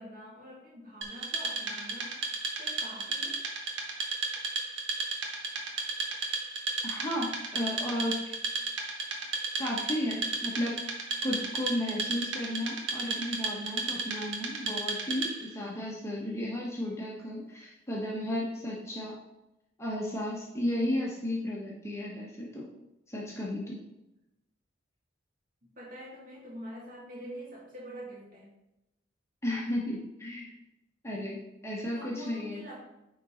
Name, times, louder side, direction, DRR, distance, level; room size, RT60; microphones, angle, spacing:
voice 1, 0.0-2.2 2.6-3.4 25.8-28.5 31.9-32.8, equal, 45° right, -5 dB, 2.4 m, -45 dB
Wood, 1.0-15.5, right 3 dB, 70° right, 1.2 m, -34 dB
voice 2, 6.8-8.2 9.6-10.8 11.2-19.2 19.8-22.7 23.1-23.8 29.4-30.5 31.0-32.7, left 1 dB, 15° left, -4 dB, 1.1 m, -34 dB
9.1 x 4.0 x 3.9 m, 0.92 s
head